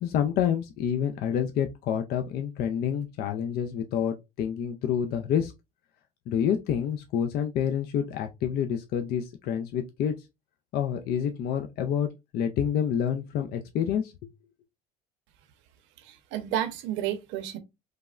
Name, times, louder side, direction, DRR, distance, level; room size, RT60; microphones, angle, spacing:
voice 1, 0.0-5.5 6.3-10.1 10.7-12.1 12.3-14.3, left 8 dB, 50° left, 0.4 m, -28 dB
voice 2, 16.0-17.6, right 11 dB, 65° right, 0.7 m, -31 dB
3.3 x 2.1 x 2.3 m
cardioid pair, 125°, 21 cm